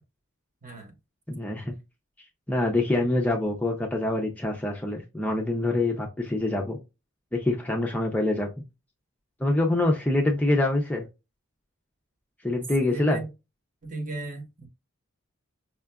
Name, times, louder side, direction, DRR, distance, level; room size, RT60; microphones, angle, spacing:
voice 1, 0.6-0.9 12.8-13.3 13.8-14.7, right 3 dB, 40° right, 1.1 m, -36 dB
voice 2, 1.3-1.7 2.5-6.8 7.3-8.5 9.4-11.1 12.4-13.2, left 2 dB, 5° left, 0.5 m, -25 dB
5.5 x 2.4 x 2.2 m
head